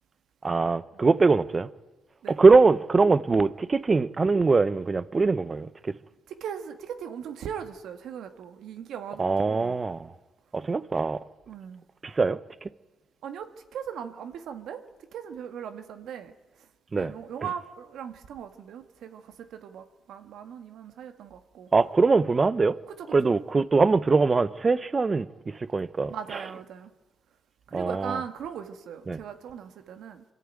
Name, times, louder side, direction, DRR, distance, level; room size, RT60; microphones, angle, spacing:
voice 1, 0.4-1.7 2.3-5.9 9.2-10.1 10.5-11.2 12.0-12.4 16.9-17.1 21.7-22.8 23.1-26.1 27.7-28.2 29.1-29.2, right 4 dB, 30° right, 0.8 m, -22 dB
voice 2, 6.3-9.8 11.5-11.8 13.2-14.8 15.1-16.7 16.9-21.7 22.9-23.4 26.1-26.9 27.7-30.2, right 8 dB, 75° right, 1.6 m, -39 dB
24.0 x 13.5 x 9.2 m
cardioid pair, 90°, 0 cm